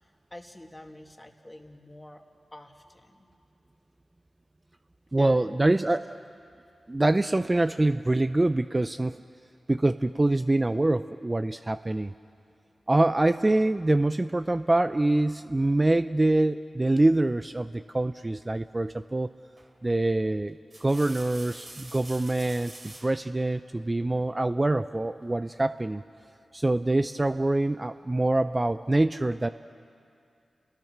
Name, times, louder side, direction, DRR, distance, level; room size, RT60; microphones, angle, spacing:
voice 1, 0.3-2.2 2.5-3.3 5.2-5.7, left 1 dB, 15° left, 3 dB, 2.2 m, -47 dB
voice 2, 5.1-6.2 6.9-9.2 9.7-12.1 12.9-19.3 19.8-26.0 26.5-29.5, right 2 dB, 25° right, 11 dB, 0.5 m, -25 dB
sound 1, 19.6-19.9 20.5-23.2 24.7-25.3, right 2 dB, 45° right, 3.5 m, -47 dB
29.5 x 20.0 x 6.1 m, 2.4 s
cardioid pair, 45°, 0 cm